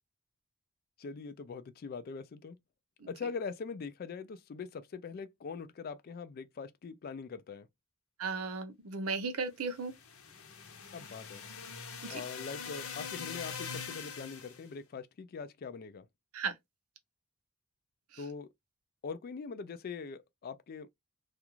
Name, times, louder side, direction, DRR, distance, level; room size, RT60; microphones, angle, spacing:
voice 1, 1.0-2.6 3.1-7.7 10.9-11.5 12.1-16.1 18.2-18.5 19.0-20.9, left 5 dB, 45° left, 0.3 m, -42 dB
voice 2, 8.2-9.9 12.1-12.2 16.3-16.5, right 4 dB, 80° right, 0.6 m, -35 dB
sound 1, 9.7-14.7, left 6 dB, 75° left, 0.7 m, -43 dB
2.4 x 2.3 x 2.8 m
head